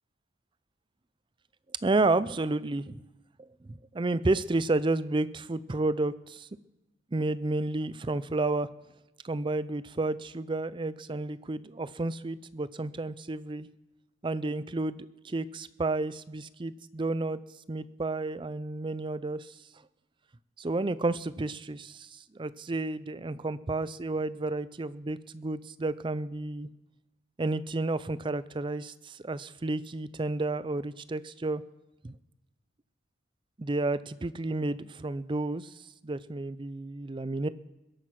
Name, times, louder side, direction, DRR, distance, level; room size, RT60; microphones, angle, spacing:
voice 1, 1.8-3.0 3.7-6.5 7.1-8.7 9.2-13.7 14.2-17.4 17.7-19.5 20.6-26.7 27.4-31.6 32.0-32.2 33.6-35.7 36.0-37.5, right 2 dB, 25° right, 16 dB, 0.4 m, -31 dB
21.5 x 9.1 x 5.9 m, 1.0 s
head